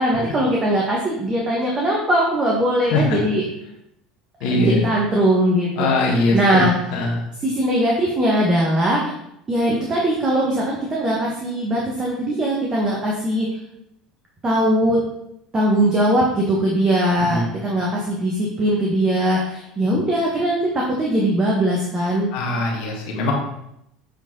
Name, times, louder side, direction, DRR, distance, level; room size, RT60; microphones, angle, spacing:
voice 1, 0.0-3.4 4.5-7.1 7.4-9.1 9.5-13.5 14.4-15.0 15.5-20.6 21.0-22.3, right 1 dB, 25° right, -3 dB, 1.6 m, -20 dB
voice 2, 4.4-4.8 5.8-6.6 6.9-7.2 17.3-17.5 22.3-23.3, left 2 dB, 55° left, -1 dB, 1.7 m, -21 dB
8.2 x 4.5 x 3.9 m, 0.79 s
figure-of-eight pair, 70°, 3 cm